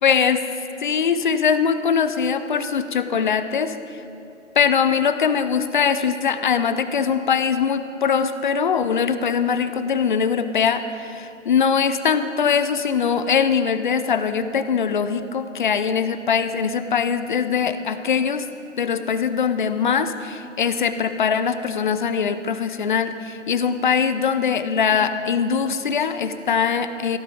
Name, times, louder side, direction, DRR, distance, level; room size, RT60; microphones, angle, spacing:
voice 1, 0.0-0.5 0.8-3.8 4.6-18.5 18.8-27.2, left 6 dB, 40° left, 11 dB, 0.5 m, -22 dB
16.5 x 9.3 x 5.0 m, 2.6 s
figure-of-eight pair, 130°, 38 cm